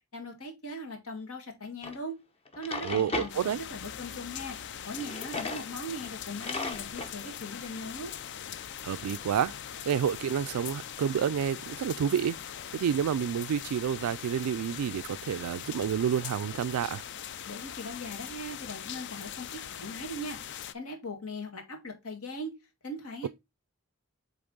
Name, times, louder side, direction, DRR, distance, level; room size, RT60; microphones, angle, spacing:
voice 1, 0.1-2.2 2.6-4.6 4.9-8.1 17.4-20.4 20.7-22.5 22.8-23.3, equal, 80° left, 1.9 m, -39 dB
Drawer open or close, 1.8-2.0 2.5-3.3 4.9-5.7 6.0-6.1 6.4-7.1, left 3 dB, 25° left, 0.8 m, -36 dB
voice 2, 2.8-3.6 8.8-9.5 9.9-12.4 12.7-17.0, right 8 dB, 90° right, 0.3 m, -29 dB
sound 1, 3.3-20.7, left 9 dB, 55° left, 0.4 m, -41 dB
7.9 x 3.5 x 3.8 m
head